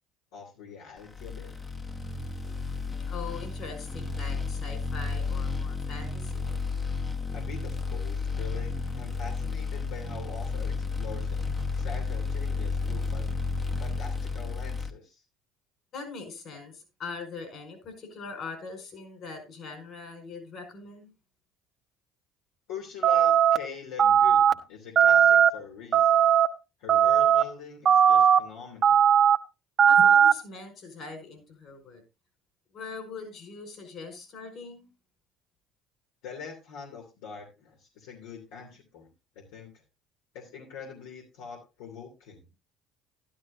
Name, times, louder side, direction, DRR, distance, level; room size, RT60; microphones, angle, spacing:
voice 1, 0.3-1.5 7.3-13.3 13.8-15.2 22.7-26.3 26.8-29.1 36.2-39.1 39.5-39.7 40.3-42.4, left 6 dB, 85° left, -1 dB, 2.8 m, -43 dB
sound 1, 1.1-14.9, left 4 dB, 20° left, 1.1 m, -32 dB
voice 2, 2.4-6.5 15.9-21.1 29.9-32.0 32.7-34.9, left 4 dB, 55° left, 7 dB, 4.8 m, -42 dB
sound 2, 23.0-23.6 24.0-24.5 25.0-25.5 25.9-26.5 26.9-27.4 27.9-28.4 28.8-29.4 29.8-30.3, right 8 dB, 45° right, 1.0 m, -18 dB
12.0 x 12.0 x 2.6 m, 0.27 s
supercardioid pair, 85°, 0 cm